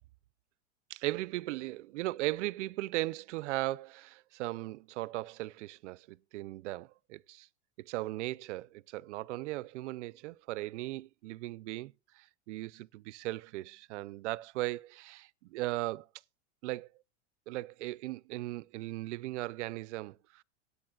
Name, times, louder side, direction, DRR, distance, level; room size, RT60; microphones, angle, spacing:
voice 1, 0.9-7.5 7.8-16.1 16.6-16.9 17.5-20.4, right 18 dB, 85° right, 0.5 m, -38 dB
24.0 x 8.5 x 2.3 m
supercardioid pair, 160°, 34 cm